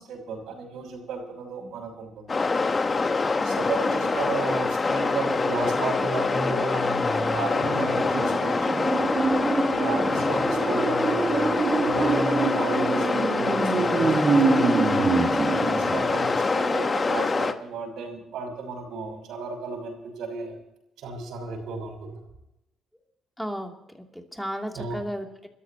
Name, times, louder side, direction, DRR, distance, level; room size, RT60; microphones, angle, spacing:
voice 1, 0.0-2.3 3.4-8.8 9.7-20.6 21.0-22.2 24.7-25.0, right 4 dB, 80° right, 2 dB, 5.8 m, -34 dB
sound 1, 2.3-17.5, left 4 dB, 30° left, 1.2 m, -25 dB
voice 2, 3.4-3.8 9.9-10.2 23.4-25.5, equal, 5° left, 2 dB, 2.9 m, -35 dB
sound 2, 7.6-16.7 17.0-17.1, right 4 dB, 45° right, 2.1 m, -26 dB
29.5 x 14.0 x 3.0 m, 0.88 s
cardioid pair, 95°, 0 cm